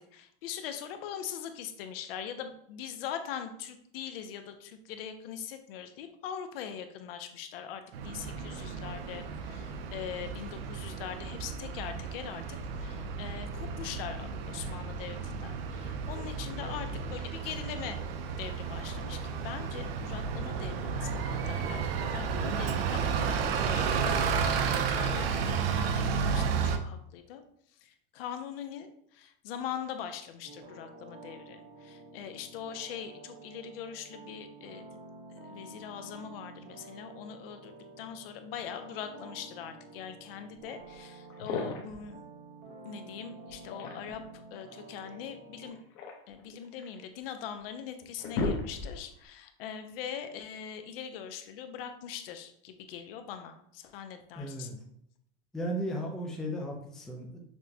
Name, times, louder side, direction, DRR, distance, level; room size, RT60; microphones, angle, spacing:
voice 1, 0.0-18.0 18.4-27.4 27.8-34.8 35.3-42.2 42.8-45.8 46.3-54.8, left 8 dB, 70° left, 8 dB, 0.6 m, -42 dB
Bus, 7.9-26.8, right 6 dB, 80° right, 0.6 m, -32 dB
sound 1, 30.4-45.7, right 2 dB, 60° right, 1.2 m, -50 dB
sound 2, 40.9-41.0 41.3-42.0 43.5-44.3 45.6-47.0 47.6-47.7 48.0-49.2, left 3 dB, 40° left, 0.8 m, -35 dB
voice 2, 54.4-54.7 55.5-57.4, equal, ahead, -1 dB, 0.4 m, -35 dB
6.0 x 2.2 x 2.7 m, 0.71 s
supercardioid pair, 145°, 29 cm